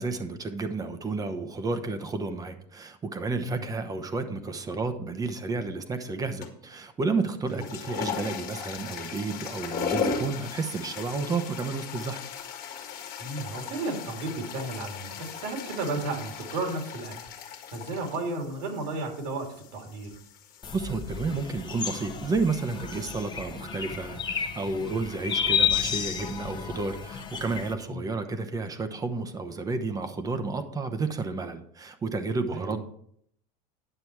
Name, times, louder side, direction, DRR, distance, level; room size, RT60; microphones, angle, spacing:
voice 1, 0.0-12.2 20.7-32.8, right 3 dB, 15° right, 9 dB, 0.9 m, -31 dB
sound 1, 6.4-6.7 7.4-23.2, left 6 dB, 45° left, 1.6 m, -38 dB
voice 2, 13.2-17.1 17.4-19.5 19.7-20.1 27.9-28.1 32.5-32.8, right 2 dB, 75° right, 2 dB, 2.9 m, -33 dB
sound 2, 20.6-27.7, left 7 dB, 20° left, 0.9 m, -31 dB
10.0 x 6.9 x 4.6 m, 0.68 s
supercardioid pair, 140°, 21 cm